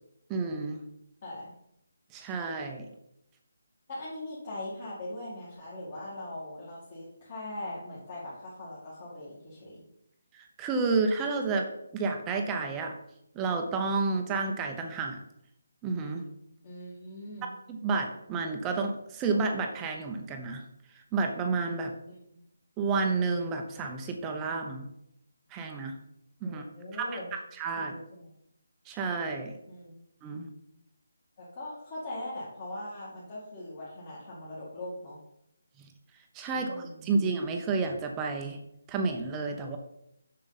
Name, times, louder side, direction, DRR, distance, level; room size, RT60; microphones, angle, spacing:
voice 1, 0.3-0.9 2.1-2.9 10.3-13.0 13.4-15.2 15.8-16.2 17.7-20.6 21.1-21.9 22.8-24.9 25.5-25.9 26.4-26.6 27.0-27.9 28.9-29.5 30.2-30.5 35.8-35.9 36.3-38.6 38.9-39.8, right 4 dB, 15° right, 3 dB, 0.7 m, -30 dB
voice 2, 1.2-1.5 3.9-9.8 16.6-17.5 22.0-22.4 26.4-27.3 27.8-28.3 29.7-29.9 31.4-35.2 36.5-37.2, left 1 dB, 35° left, -8 dB, 2.4 m, -41 dB
7.0 x 6.6 x 4.1 m, 0.79 s
hypercardioid pair, 165°, 0 cm